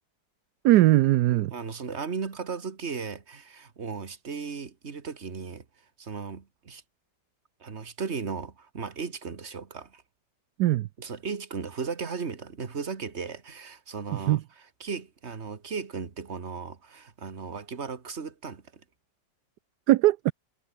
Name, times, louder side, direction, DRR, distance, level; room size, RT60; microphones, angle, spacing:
voice 1, 0.6-1.5 10.6-10.9 14.1-14.4 19.9-20.3, right 15 dB, 75° right, 1.1 m, -20 dB
voice 2, 1.3-5.6 6.0-6.8 7.6-10.0 11.0-14.4 14.8-18.6, right 5 dB, 40° right, 2.0 m, -36 dB
omnidirectional pair, 1.9 m